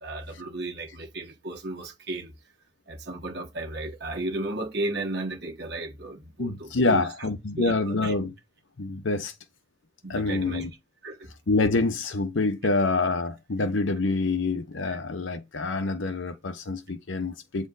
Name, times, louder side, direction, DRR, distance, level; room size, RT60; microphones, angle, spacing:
voice 1, 0.0-2.3 2.9-7.1 7.6-8.1 10.0-10.7 11.0-11.3, right 2 dB, 55° right, 1.4 m, -34 dB
voice 2, 6.4-8.3 8.8-9.3 10.1-10.7 11.5-17.7, left 3 dB, 70° left, 0.8 m, -26 dB
8.1 x 4.3 x 3.9 m
head